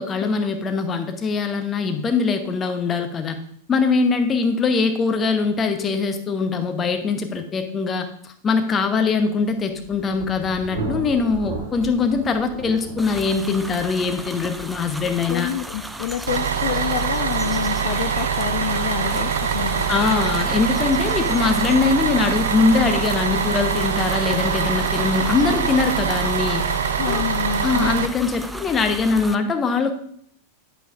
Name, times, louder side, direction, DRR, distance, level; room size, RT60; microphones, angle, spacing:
voice 1, 0.0-3.4 3.7-15.5 19.9-26.6 27.1-27.2 27.6-29.9, left 4 dB, 20° left, 6 dB, 0.9 m, -22 dB
Thunder, 9.4-20.9, right 3 dB, 45° right, 2.4 m, -37 dB
sound 1, 13.0-29.3, right 1 dB, 5° right, 0.4 m, -35 dB
voice 2, 15.0-19.9 27.0-27.9, left 11 dB, 55° left, 9 dB, 0.4 m, -28 dB
Bus, 16.3-28.1, right 7 dB, 70° right, 0.4 m, -24 dB
8.8 x 8.1 x 2.5 m, 0.65 s
figure-of-eight pair, 90°, 0 cm